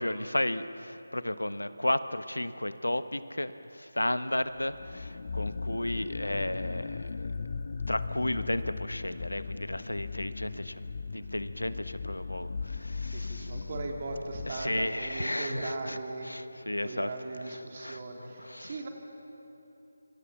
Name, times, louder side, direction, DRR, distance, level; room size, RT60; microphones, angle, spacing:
voice 1, 0.0-7.3 7.9-10.8 11.1-13.6 14.5-16.0 16.2-17.1 17.8-18.7, left 1 dB, 85° left, 12 dB, 1.1 m, -33 dB
sound 1, 4.6-15.2, left 4 dB, 45° left, 0.8 m, -38 dB
voice 2, 13.1-16.5 16.8-18.9, right 2 dB, 35° right, 1 dB, 3.8 m, -38 dB
27.5 x 24.5 x 7.3 m, 3.0 s
figure-of-eight pair, 160°, 0 cm